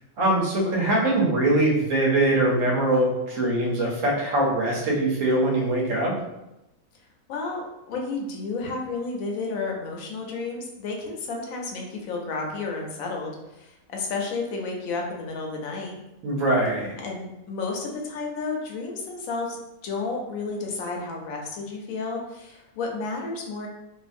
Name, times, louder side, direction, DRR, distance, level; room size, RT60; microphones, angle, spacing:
voice 1, 0.2-6.1 16.2-17.0, right 1 dB, 75° right, -3 dB, 1.1 m, -22 dB
voice 2, 7.3-15.9 17.0-23.7, left 3 dB, 80° left, 0 dB, 1.0 m, -32 dB
2.6 x 2.5 x 2.5 m, 0.93 s
omnidirectional pair, 1.4 m